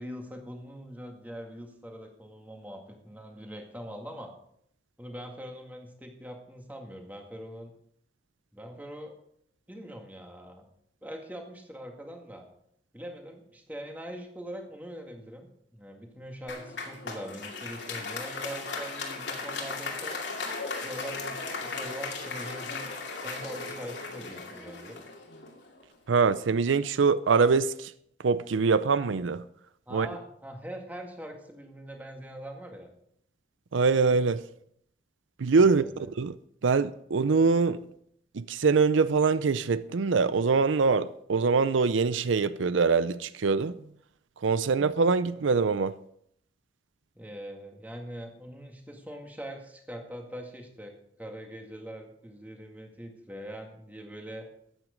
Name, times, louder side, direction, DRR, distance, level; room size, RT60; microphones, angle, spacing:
voice 1, 0.0-4.3 5.0-7.7 8.5-9.1 9.7-10.7 11.0-12.5 12.9-20.2 20.7-22.9 23.2-25.0 29.9-32.9 35.6-36.1 47.2-54.5, equal, 10° right, 1.9 m, -42 dB
Applause, 16.5-25.8, left 4 dB, 70° left, 2.5 m, -37 dB
voice 2, 26.1-27.9 28.2-29.4 29.9-30.1 33.7-34.4 35.4-35.9 36.2-36.4 36.6-37.8 38.3-43.8 44.4-46.0, right 4 dB, 90° right, 0.5 m, -24 dB
14.0 x 9.1 x 5.1 m
head